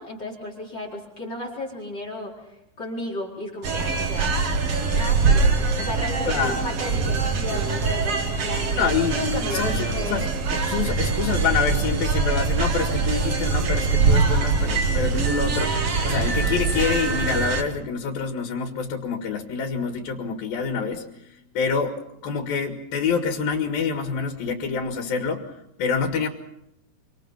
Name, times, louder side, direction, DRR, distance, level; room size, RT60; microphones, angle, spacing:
voice 1, 0.0-4.5 4.9-8.8 9.1-10.2, left 1 dB, 30° left, 1 dB, 5.0 m, -34 dB
sound 1, 3.6-17.6, right 4 dB, 45° right, 2.6 m, -23 dB
voice 2, 6.3-6.6 8.8-22.0 22.2-26.3, left 6 dB, 85° left, 4 dB, 3.7 m, -27 dB
27.0 x 25.0 x 5.8 m, 0.80 s
omnidirectional pair, 4.0 m